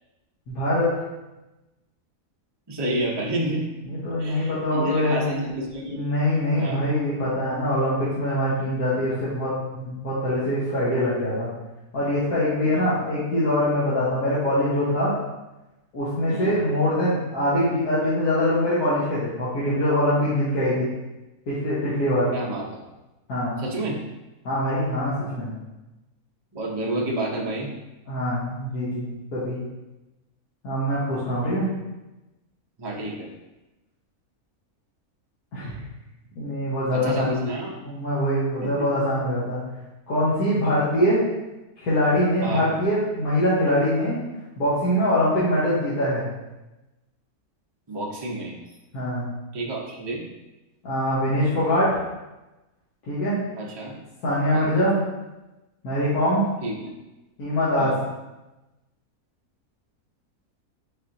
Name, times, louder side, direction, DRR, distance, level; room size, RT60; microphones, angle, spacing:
voice 1, 0.5-0.9 3.8-5.2 5.9-11.5 11.9-15.1 15.9-20.9 21.5-22.3 23.3-23.6 24.4-25.5 28.1-29.1 29.3-29.6 30.6-31.7 35.5-35.7 36.3-37.3 37.8-39.6 40.1-41.2 41.8-44.2 44.6-46.2 48.9-49.3 50.8-52.0 53.1-53.4 54.2-55.0 55.8-56.5 57.4-57.9, left 1 dB, 90° left, -10 dB, 1.6 m, -23 dB
voice 2, 2.7-3.7 4.2-6.0 6.6-6.9 12.7-12.9 16.3-16.5 22.3-22.8 23.6-24.0 26.5-27.7 32.8-33.3 36.9-37.7 38.6-38.9 42.4-42.7 45.3-45.4 47.9-48.5 49.5-50.2 53.6-53.9 54.5-54.7 56.6-56.9 57.8-58.0, right 1 dB, 35° right, -3 dB, 0.4 m, -29 dB
4.2 x 4.2 x 2.6 m, 1.0 s
omnidirectional pair, 1.5 m